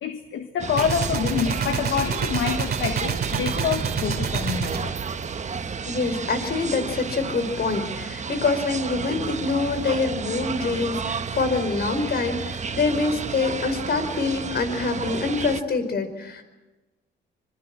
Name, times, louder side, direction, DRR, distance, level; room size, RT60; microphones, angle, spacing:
voice 1, 0.0-4.9 11.5-11.6 11.9-12.3, left 8 dB, 75° left, 1.5 m, -27 dB
sound 1, 0.6-15.6, right 6 dB, 35° right, 1.3 m, -32 dB
Gunshot gunfire, 0.8-6.0, right 6 dB, 50° right, 2.6 m, -28 dB
voice 2, 5.8-16.4, left 4 dB, 55° left, 4.8 m, -25 dB
25.0 x 24.5 x 7.6 m
cardioid pair, 90°, 20 cm